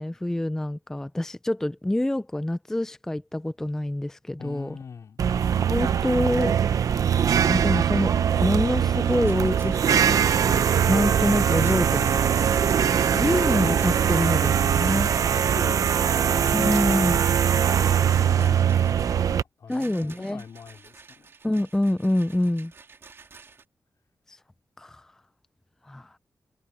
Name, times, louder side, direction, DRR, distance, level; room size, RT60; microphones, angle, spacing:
voice 1, 0.0-4.8 5.7-6.6 7.4-8.1 8.4-10.2 10.4-12.3 13.1-15.1 16.5-17.2 19.7-20.4 21.4-22.7 24.3-24.4 24.8-25.1 25.8-26.2, left 1 dB, 10° left, 0.4 m, -26 dB
voice 2, 4.4-5.2 15.4-16.4 17.6-21.3, left 6 dB, 65° left, 3.6 m, -43 dB
sound 1, 5.2-19.4, right 8 dB, 80° right, 0.8 m, -22 dB
Rattle, 9.0-10.5 11.5-15.7 16.4-17.3 18.0-19.2 19.7-23.6, right 4 dB, 45° right, 2.8 m, -50 dB
wide cardioid pair, 160°, 6 cm